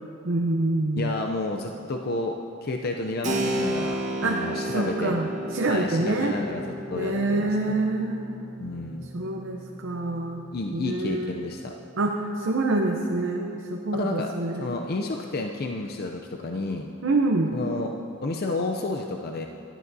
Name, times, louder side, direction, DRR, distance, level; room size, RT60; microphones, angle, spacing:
voice 1, 0.2-1.2 4.2-6.4 6.9-8.4 9.1-10.4 10.7-11.3 12.0-14.7 17.0-17.5, right 2 dB, 65° right, 1 dB, 0.6 m, -26 dB
voice 2, 1.0-2.3 2.6-5.1 5.7-6.6 6.9-7.7 8.6-9.1 10.5-11.7 13.9-14.3 14.6-16.9 17.5-19.5, left 2 dB, 45° left, 2 dB, 0.5 m, -31 dB
Keyboard (musical), 3.2-11.6, right 1 dB, 35° right, 1.1 m, -33 dB
18.0 x 12.0 x 2.7 m, 2.7 s
head